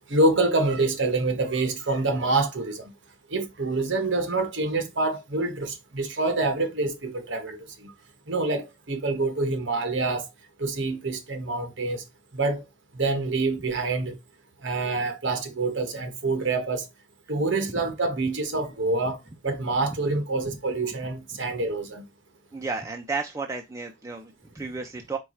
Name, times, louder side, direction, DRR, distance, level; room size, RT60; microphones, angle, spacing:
voice 1, 0.1-2.9 3.3-7.9 8.3-10.3 10.6-12.0 12.3-12.6 12.9-14.1 14.6-16.9 17.3-22.1, right 3 dB, 55° right, 0.9 m, -26 dB
voice 2, 22.5-25.2, right 4 dB, 15° right, 0.3 m, -33 dB
4.5 x 2.3 x 4.2 m
head